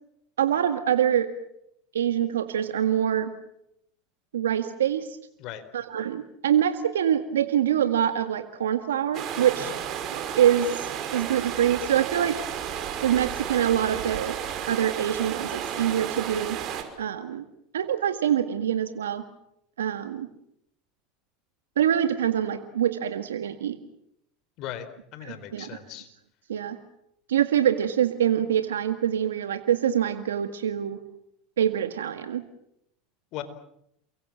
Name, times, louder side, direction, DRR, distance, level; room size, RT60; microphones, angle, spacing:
voice 1, 0.4-1.3 1.9-3.3 4.3-5.1 5.7-9.7 10.4-10.9 11.1-12.4 13.0-14.4 14.7-16.6 17.0-17.4 17.7-19.2 19.8-20.3 21.8-23.8 25.2-25.7 26.5-26.8 27.3-31.0 31.6-32.4, right 10 dB, 90° right, 8 dB, 1.8 m, -25 dB
sound 1, 9.1-16.8, right 9 dB, 50° right, 5.8 m, -33 dB
voice 2, 25.1-26.1 33.3-33.4, left 12 dB, 55° left, 11 dB, 4.3 m, -37 dB
29.5 x 23.5 x 7.5 m, 0.76 s
hypercardioid pair, 90°, 0 cm